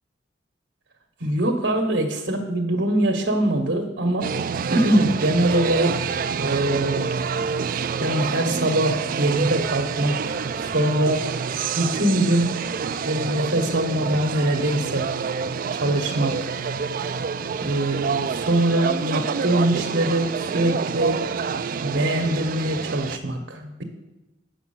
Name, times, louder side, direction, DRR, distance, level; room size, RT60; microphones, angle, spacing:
voice 1, 1.2-4.3 4.7-7.1 8.0-11.3 11.8-12.6 13.1-15.1 15.7-16.5 17.6-21.2 21.8-23.8, right 1 dB, 80° right, 2 dB, 1.1 m, -23 dB
sound 1, 4.2-23.2, right 6 dB, 50° right, 0.3 m, -27 dB
8.5 x 6.0 x 7.0 m, 1.0 s
head